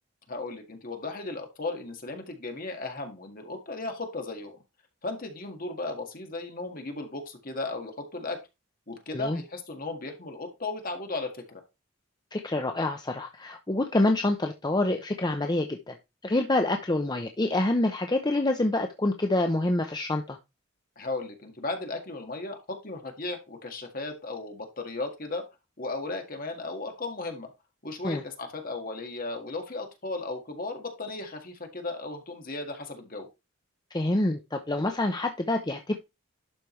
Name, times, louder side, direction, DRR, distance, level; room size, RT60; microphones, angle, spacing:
voice 1, 0.3-4.6 5.0-8.4 8.9-11.6 21.0-25.4 25.8-27.5 27.8-33.3, left 2 dB, 45° left, 1.9 m, -36 dB
voice 2, 12.3-16.0 16.2-20.4 28.0-28.2 33.9-35.9, left 2 dB, 20° left, 0.7 m, -27 dB
11.5 x 5.1 x 3.2 m
head